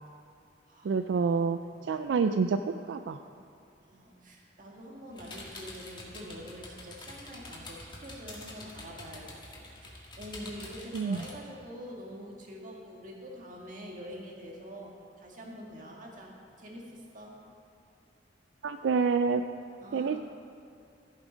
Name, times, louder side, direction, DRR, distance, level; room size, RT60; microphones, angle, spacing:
voice 1, 0.8-3.2 10.9-11.2 18.6-19.4 19.9-20.2, right 5 dB, 75° right, 9 dB, 0.3 m, -28 dB
voice 2, 3.8-17.4 19.8-20.2, equal, 50° right, -1 dB, 1.8 m, -45 dB
sound 1, 5.1-11.3, left 2 dB, 25° left, 1.8 m, -46 dB
14.0 x 7.4 x 5.1 m, 2.5 s
head